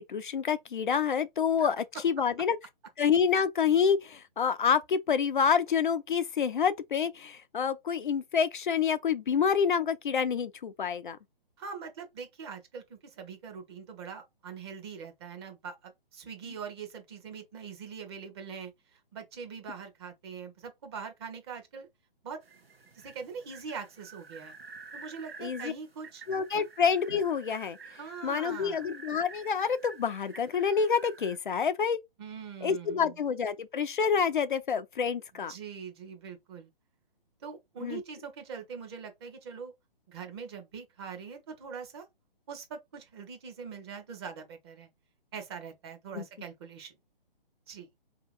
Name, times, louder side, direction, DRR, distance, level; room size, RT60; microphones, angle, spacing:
voice 1, 0.0-2.6 3.0-11.2 25.4-25.7 26.3-27.8 28.2-32.0 32.6-35.5 37.8-38.0 46.1-46.2, left 6 dB, 60° left, 0.4 m, -27 dB
voice 2, 11.6-21.9 22.2-22.4 22.9-24.5 24.9-26.3 26.5-26.6 27.9-28.9 32.2-33.2 35.5-36.7 37.4-39.7 40.1-42.0 42.5-44.9 45.3-47.0 47.7-47.9, right 6 dB, 25° right, 0.9 m, -43 dB
sound 1, 22.4-31.4, right 4 dB, 80° right, 0.8 m, -49 dB
4.4 x 2.9 x 2.5 m
figure-of-eight pair, 135°, 29 cm